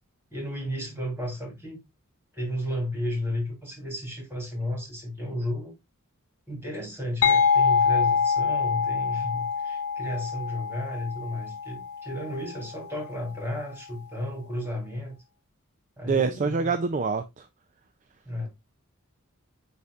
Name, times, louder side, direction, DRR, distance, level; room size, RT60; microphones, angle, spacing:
voice 1, 0.3-1.8 2.3-5.7 6.5-15.1 16.0-16.7 18.3-18.5, left 1 dB, 10° right, 3.3 m, -33 dB
sound 1, 7.2-12.7, left 6 dB, 85° left, 0.6 m, -25 dB
voice 2, 16.0-17.4, right 4 dB, 35° right, 0.4 m, -25 dB
9.5 x 4.2 x 2.4 m
head